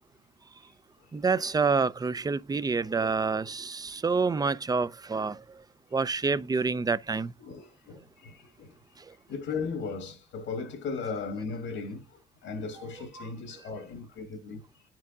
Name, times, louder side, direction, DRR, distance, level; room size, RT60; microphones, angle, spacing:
voice 1, 1.1-5.4 5.9-7.3 13.2-13.3, right 4 dB, 20° right, 0.4 m, -27 dB
voice 2, 7.4-8.8 9.3-14.6, left 4 dB, 80° left, 1.5 m, -37 dB
9.4 x 4.6 x 3.7 m
cardioid pair, 90°, 20 cm